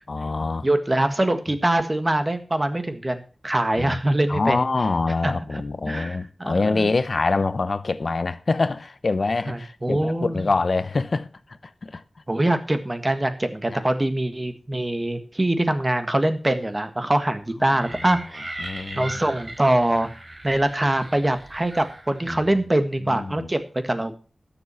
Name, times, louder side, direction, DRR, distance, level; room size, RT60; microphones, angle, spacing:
voice 1, 0.1-0.7 3.8-4.0 4.3-11.3 11.8-12.0 13.7-13.8 18.1-18.2 18.6-19.1 22.3-22.4 23.1-23.5, left 3 dB, 65° left, 0.8 m, -25 dB
voice 2, 0.6-4.6 5.2-6.9 9.5-10.4 12.3-18.7 18.9-20.1 20.4-24.2, right 1 dB, 30° right, 1.6 m, -23 dB
sound 1, 17.7-22.5, right 1 dB, 55° right, 4.6 m, -39 dB
12.5 x 7.2 x 5.7 m
wide cardioid pair, 50°, 0 cm